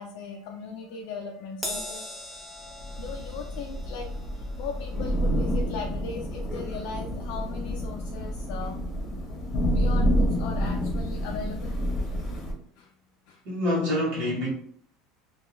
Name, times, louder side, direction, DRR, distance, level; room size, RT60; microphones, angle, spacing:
voice 1, 0.0-2.0 2.6-8.8 9.7-11.8 12.3-12.4 12.8-12.9 13.3-13.4, left 5 dB, 70° left, 0 dB, 0.3 m, -38 dB
Crash cymbal, 1.6-8.2 8.6-8.8 9.8-9.9, left 1 dB, ahead, 0.4 m, -42 dB
Thunder / Rain, 2.8-12.5, equal, 30° left, 0.8 m, -28 dB
voice 2, 13.4-14.5, left 1 dB, 60° right, -6 dB, 1.1 m, -26 dB
2.2 x 2.2 x 3.0 m, 0.62 s
cardioid pair, 155°, 0 cm